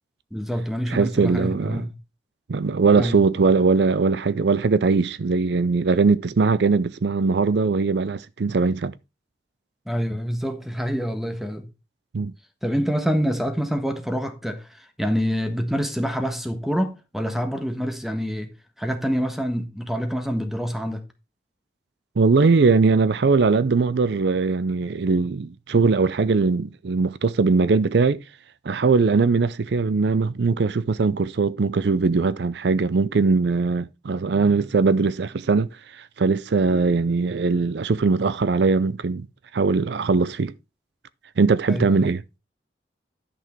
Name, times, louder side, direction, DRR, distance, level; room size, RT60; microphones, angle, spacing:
voice 1, 0.3-1.9 3.0-3.2 9.9-11.7 12.6-18.5 18.8-21.0 41.7-42.1, equal, ahead, 1.4 m, -26 dB
voice 2, 0.9-1.9 2.5-8.9 12.1-12.3 22.2-28.2 28.6-39.3 39.5-40.5 41.4-42.2, right 4 dB, 70° right, 0.5 m, -20 dB
11.0 x 6.2 x 4.5 m
head